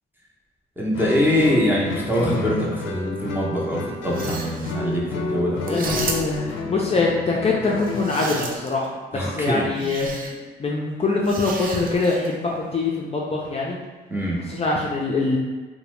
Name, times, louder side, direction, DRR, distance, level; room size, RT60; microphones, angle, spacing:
voice 1, 0.8-5.8 9.1-9.9 14.1-14.4, equal, 10° right, -5 dB, 0.7 m, -23 dB
Guitar, 0.9-8.4, left 3 dB, 90° left, 0.4 m, -30 dB
sound 1, 4.0-4.7 5.6-6.5 7.7-8.9 9.8-10.3 11.2-12.3, right 4 dB, 45° right, 0.4 m, -33 dB
voice 2, 5.7-13.8 14.5-15.4, left 3 dB, 30° left, -3 dB, 0.4 m, -24 dB
sound 2, 5.8-7.7, right 1 dB, 85° right, 0.6 m, -38 dB
2.7 x 2.1 x 3.1 m, 1.3 s
cardioid pair, 90°, 20 cm